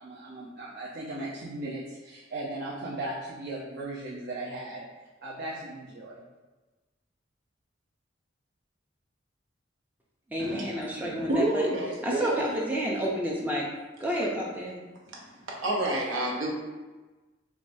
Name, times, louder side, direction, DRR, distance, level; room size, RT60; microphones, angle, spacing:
voice 1, 0.0-4.9 5.2-6.2, right 2 dB, 55° right, -6 dB, 0.5 m, -37 dB
voice 2, 10.3-11.7 12.0-13.7 14.0-14.8, equal, 10° right, -3 dB, 0.4 m, -30 dB
voice 3, 11.1-12.5 15.6-16.5, right 1 dB, 90° right, -3 dB, 0.8 m, -28 dB
4.7 x 2.2 x 2.6 m, 1.2 s
head